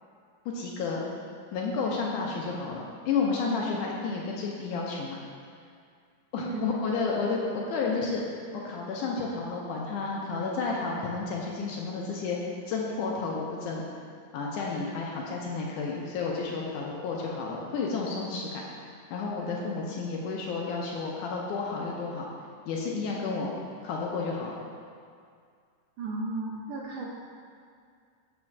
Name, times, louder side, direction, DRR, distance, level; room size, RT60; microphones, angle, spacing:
voice 1, 0.5-1.0 1.5-5.2 6.3-8.2 8.6-12.4 12.7-13.9 14.3-22.3 22.7-23.5 23.8-24.6, left 4 dB, 75° left, -2 dB, 2.0 m, -31 dB
voice 2, 6.4-6.7 26.0-27.1, right 3 dB, 75° right, -2 dB, 2.1 m, -34 dB
7.1 x 4.3 x 5.9 m, 2.2 s
omnidirectional pair, 4.0 m